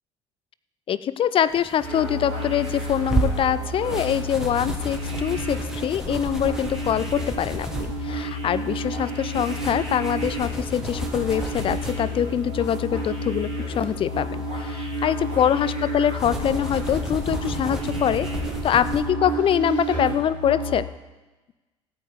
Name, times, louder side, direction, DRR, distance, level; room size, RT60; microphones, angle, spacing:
voice 1, 0.9-18.3 18.6-20.9, left 9 dB, 35° left, 16 dB, 0.6 m, -24 dB
sound 1, 1.5-19.0, right 2 dB, 5° right, 1.8 m, -34 dB
sound 2, 1.8-20.7, equal, 60° right, 5.0 m, -31 dB
16.5 x 8.6 x 4.9 m, 1.1 s
figure-of-eight pair, 55°, 15 cm